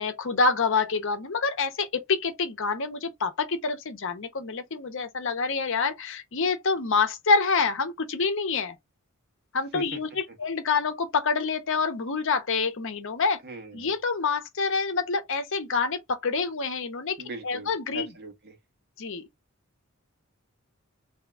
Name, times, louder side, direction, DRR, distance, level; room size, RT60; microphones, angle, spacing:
voice 1, 0.0-8.7 9.5-13.4 13.7-17.2 17.4-18.1 19.0-19.3, left 4 dB, 60° left, 0.7 m, -27 dB
voice 2, 13.4-13.9 17.2-18.6, right 2 dB, 45° right, 1.3 m, -40 dB
3.6 x 2.8 x 3.5 m
head